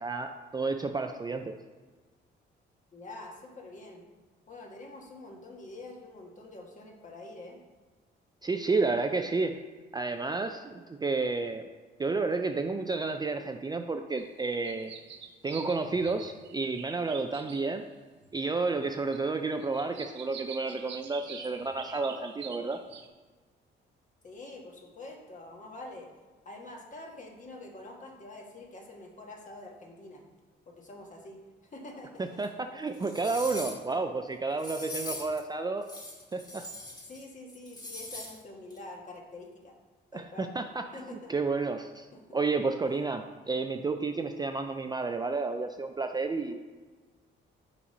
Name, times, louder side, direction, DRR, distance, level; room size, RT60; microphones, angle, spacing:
voice 1, 0.0-1.6 8.4-9.6 9.9-11.6 12.0-15.0 15.4-17.9 18.3-22.8 32.2-35.9 36.3-36.6 40.1-42.1 42.3-46.6, right 3 dB, 20° right, 6 dB, 0.4 m, -31 dB
voice 2, 2.9-4.0 4.5-7.6 24.2-26.1 26.4-30.2 30.7-31.4 31.7-32.4 33.5-33.8 35.1-35.2 37.1-39.7 40.1-40.5 40.9-41.3 42.1-42.4, left 2 dB, 40° left, 0 dB, 1.5 m, -46 dB
sound 1, 14.2-14.3 14.5-17.9 18.2-18.3 18.8-19.2 19.6-23.1, right 7 dB, 65° right, 0.8 m, -46 dB
sound 2, 32.4-32.5 32.9-33.9 34.6-35.4 35.8-37.2 37.5-38.4 38.7-38.8, left 2 dB, 20° left, 1.7 m, -41 dB
5.6 x 4.1 x 5.3 m, 1.4 s
cardioid pair, 90°, 20 cm